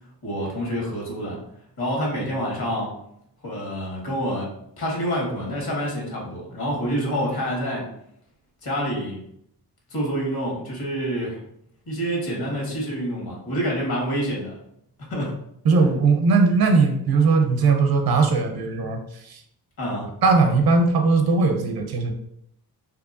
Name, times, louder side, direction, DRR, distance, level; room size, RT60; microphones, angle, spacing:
voice 1, 0.2-1.4 1.8-2.9 3.4-4.5 4.8-7.8 8.6-9.2 9.9-11.4 11.9-14.6 15.1-15.3 19.8-20.1, equal, 60° left, -2 dB, 1.4 m, -27 dB
voice 2, 15.6-19.4 20.2-22.1, right 4 dB, 60° right, 5 dB, 0.6 m, -19 dB
2.8 x 2.3 x 2.6 m, 0.74 s
supercardioid pair, 50°, 41 cm